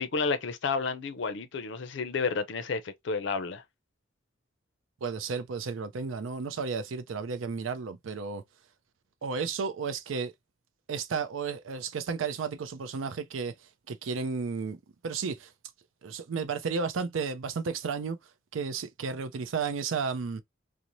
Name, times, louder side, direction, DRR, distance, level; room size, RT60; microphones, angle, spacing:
voice 1, 0.0-3.6, left 4 dB, 65° left, 0.5 m, -31 dB
voice 2, 5.0-8.4 9.2-10.3 10.9-13.5 13.9-14.8 15.0-15.5 16.0-18.2 18.5-20.4, right 5 dB, 80° right, 0.5 m, -33 dB
2.6 x 2.0 x 2.9 m
head